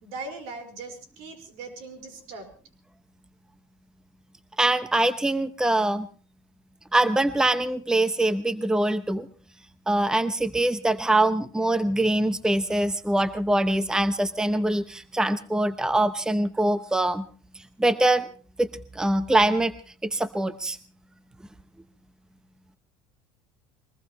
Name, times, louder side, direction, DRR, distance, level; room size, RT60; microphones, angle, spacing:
voice 1, 0.0-2.5, right 3 dB, 70° right, 5 dB, 4.9 m, -39 dB
voice 2, 4.6-6.1 6.9-9.3 9.9-17.3 17.8-18.3 18.6-19.7 20.0-20.8, right 1 dB, 5° right, 13 dB, 0.8 m, -23 dB
22.5 x 20.5 x 3.1 m, 0.39 s
supercardioid pair, 110°, 11 cm